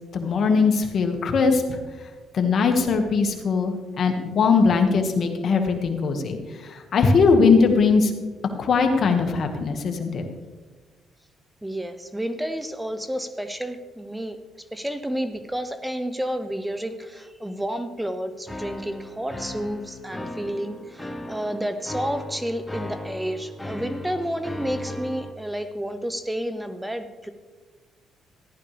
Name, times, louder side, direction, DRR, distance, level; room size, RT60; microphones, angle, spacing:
voice 1, 0.1-1.8 2.3-6.4 6.6-8.1 8.6-10.2, left 4 dB, 60° left, 4 dB, 1.8 m, -20 dB
voice 2, 11.6-14.4 14.7-27.3, equal, 10° right, 9 dB, 0.8 m, -30 dB
sound 1, 18.5-25.3, left 2 dB, 10° left, 1.3 m, -36 dB
14.5 x 11.5 x 3.4 m, 1.3 s
cardioid pair, 90°, 0 cm